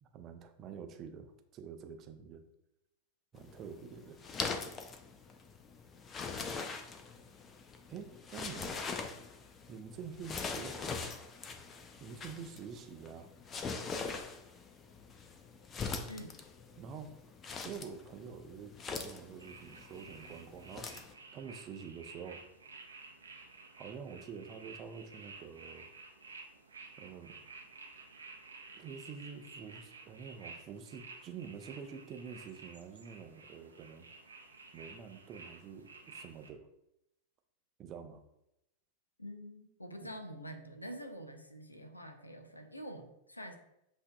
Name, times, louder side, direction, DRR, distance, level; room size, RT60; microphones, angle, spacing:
voice 1, 0.0-2.5 3.3-4.2 7.9-8.8 9.7-11.1 12.0-13.3 16.8-17.2 17.6-21.0 21.3-22.5 23.8-25.9 27.0-27.6 28.7-34.1 34.7-36.7 37.8-38.2 40.0-40.1, right 6 dB, 30° right, 7 dB, 0.5 m, -47 dB
sound 1, 3.4-21.1, left 4 dB, 25° left, 0.5 m, -43 dB
voice 2, 16.1-16.4 39.2-43.6, equal, 85° left, 6 dB, 0.6 m, -46 dB
sound 2, 19.4-36.5, right 3 dB, 75° right, 0.7 m, -53 dB
7.7 x 2.6 x 2.3 m, 0.84 s
figure-of-eight pair, 90°, 0 cm